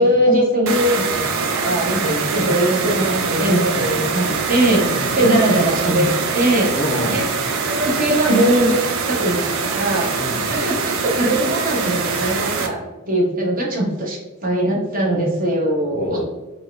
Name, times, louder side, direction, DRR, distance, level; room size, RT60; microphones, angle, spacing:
voice 1, 0.0-4.8 5.1-6.1 6.3-6.7 7.1-7.2 7.7-8.8 9.0-10.1 10.5-12.8 13.1-16.2, right 1 dB, 40° right, -2 dB, 1.1 m, -20 dB
sound 1, 0.7-12.7, right 5 dB, 70° right, 0.5 m, -23 dB
voice 2, 4.7-5.2 6.7-7.2 10.2-10.5 15.9-16.3, left 1 dB, 30° left, 2 dB, 0.5 m, -27 dB
4.5 x 2.3 x 3.1 m, 1.1 s
head